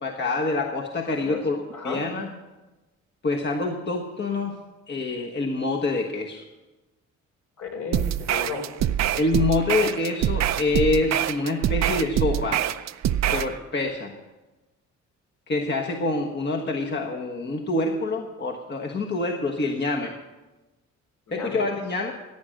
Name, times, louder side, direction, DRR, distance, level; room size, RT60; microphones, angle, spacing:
voice 1, 0.0-2.3 3.2-4.6 4.9-6.4 9.2-12.6 13.3-14.1 15.5-20.1 21.3-22.1, left 2 dB, 35° left, 1 dB, 1.3 m, -26 dB
voice 2, 7.6-8.7 21.3-21.7, left 4 dB, 65° left, 1 dB, 4.1 m, -33 dB
sound 1, 7.9-13.5, right 11 dB, 60° right, 0.6 m, -25 dB
15.5 x 8.9 x 6.5 m, 1.1 s
cardioid pair, 90°, 30 cm